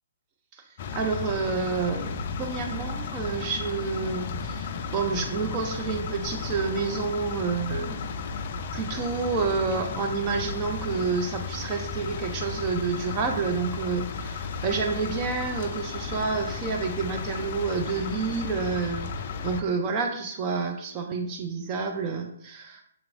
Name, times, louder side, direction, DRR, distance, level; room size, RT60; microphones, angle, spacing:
voice 1, 0.5-8.0 8.7-19.1 19.4-22.8, right 4 dB, 25° right, 3 dB, 0.4 m, -29 dB
sound 1, 0.8-19.6, left 5 dB, 40° left, 0.3 m, -34 dB
5.9 x 2.9 x 2.5 m, 0.71 s
figure-of-eight pair, 130°, 0 cm